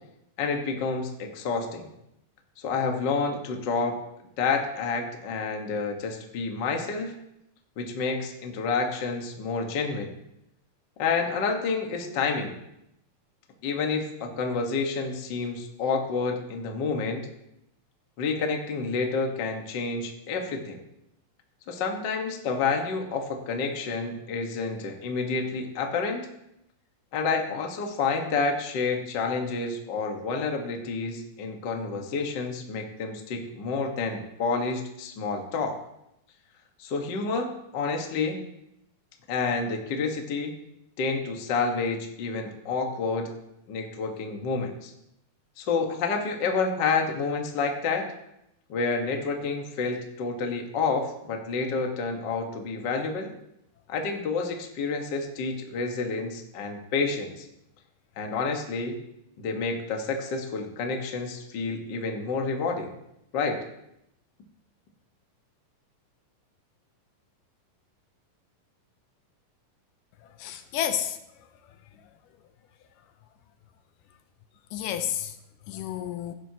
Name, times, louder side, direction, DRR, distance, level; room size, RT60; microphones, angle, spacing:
voice 1, 0.4-1.9 2.6-3.9 4.4-7.1 7.8-10.1 11.0-12.5 13.6-17.3 18.2-20.8 21.7-26.3 27.1-35.8 36.8-38.4 39.3-40.5 41.0-43.3 43.7-44.9 45.6-48.0 48.7-53.3 53.9-57.5 58.2-59.0 59.4-62.9 63.3-63.6, left 4 dB, 55° left, 3 dB, 1.2 m, -29 dB
voice 2, 70.4-71.2 74.7-75.4 75.7-76.3, left 10 dB, 80° left, 9 dB, 2.2 m, -30 dB
16.0 x 9.2 x 2.8 m, 0.82 s
omnidirectional pair, 3.9 m